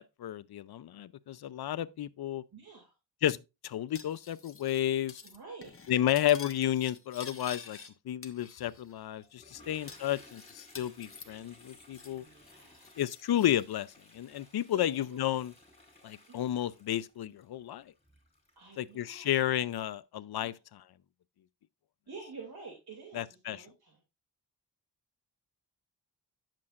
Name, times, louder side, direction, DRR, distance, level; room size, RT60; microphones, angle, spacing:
voice 1, 0.0-2.4 3.2-3.4 3.6-5.2 5.9-7.8 8.1-12.2 13.0-13.9 14.1-15.5 16.0-17.8 18.8-20.8 23.1-23.6, left 12 dB, 70° left, 0.6 m, -32 dB
voice 2, 2.5-2.9 5.2-5.7 9.6-10.0 12.2-13.0 14.7-15.4 16.3-16.5 18.6-19.4 20.4-20.6 22.1-24.0, right 4 dB, 65° right, 2.7 m, -49 dB
Cutlery silverware, 3.9-4.8 5.1-5.4 5.6-7.9 8.2-8.9 9.2-9.3 9.9-12.2 12.5-13.6, left 5 dB, 35° left, 1.1 m, -49 dB
Toilet flush, 9.2-19.8, left 2 dB, 15° left, 4.0 m, -59 dB
9.6 x 7.6 x 2.5 m
wide cardioid pair, 105°, 40 cm